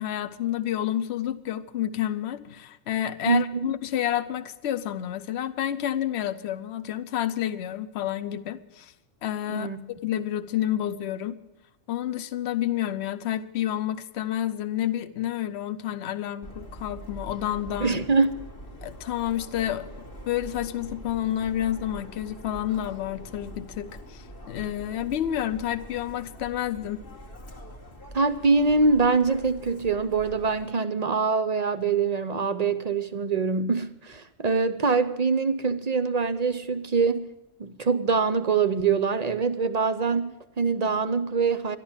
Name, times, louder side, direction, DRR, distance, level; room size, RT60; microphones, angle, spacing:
voice 1, 0.0-8.9 9.2-11.4 11.9-18.1 18.8-19.9 20.3-27.0, left 11 dB, 60° left, 13 dB, 0.9 m, -29 dB
voice 2, 3.3-3.7 9.5-9.8 17.8-18.3 28.1-37.3 37.6-41.8, right 4 dB, 45° right, 11 dB, 0.5 m, -24 dB
Subway metro underground, 16.4-30.7, equal, 45° left, 1.7 m, -44 dB
13.0 x 11.5 x 7.2 m, 0.93 s
omnidirectional pair, 1.3 m